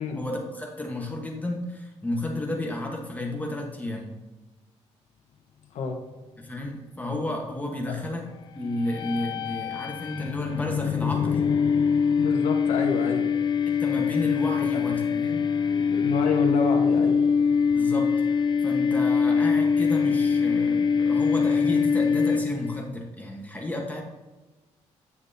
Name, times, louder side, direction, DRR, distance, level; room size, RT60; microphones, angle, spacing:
voice 1, 0.1-4.2 6.4-8.3 8.6-11.5 13.7-15.5 17.7-18.1 18.6-24.0, left 1 dB, 15° left, 1 dB, 1.2 m, -32 dB
sound 1, 8.8-22.8, left 6 dB, 40° left, 0.4 m, -23 dB
voice 2, 12.2-13.3 14.7-14.8 15.6-17.2, left 4 dB, 75° left, 2 dB, 1.4 m, -29 dB
9.9 x 7.2 x 2.8 m, 1.1 s
cardioid pair, 150°, 12 cm